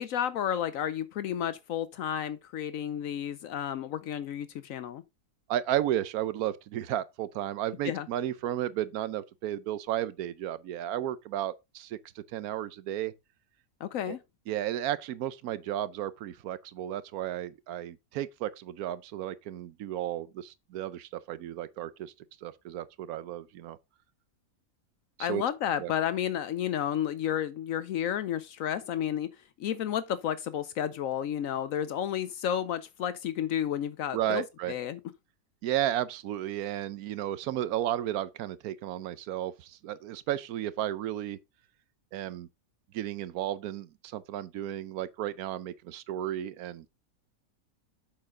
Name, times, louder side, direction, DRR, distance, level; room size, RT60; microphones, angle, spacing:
voice 1, 0.0-5.0 7.8-8.1 13.8-14.2 25.2-29.3 29.6-35.0, left 10 dB, 75° left, 1.0 m, -31 dB
voice 2, 5.5-13.1 14.1-14.2 14.5-22.1 22.4-23.8 25.2-25.4 25.8-25.9 34.1-34.7 35.6-41.4 42.1-42.5 42.9-46.9, right 12 dB, 90° right, 1.1 m, -33 dB
7.7 x 6.5 x 3.7 m
omnidirectional pair, 1.5 m